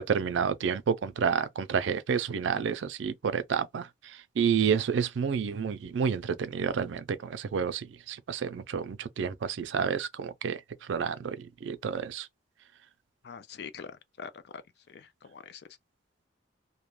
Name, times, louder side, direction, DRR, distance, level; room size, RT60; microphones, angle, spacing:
voice 1, 0.0-10.6 10.9-12.3, right 6 dB, 75° right, 0.4 m, -30 dB
voice 2, 13.2-13.9 14.2-14.6 14.9-15.6, left 6 dB, 55° left, 0.3 m, -43 dB
2.3 x 2.1 x 3.1 m
head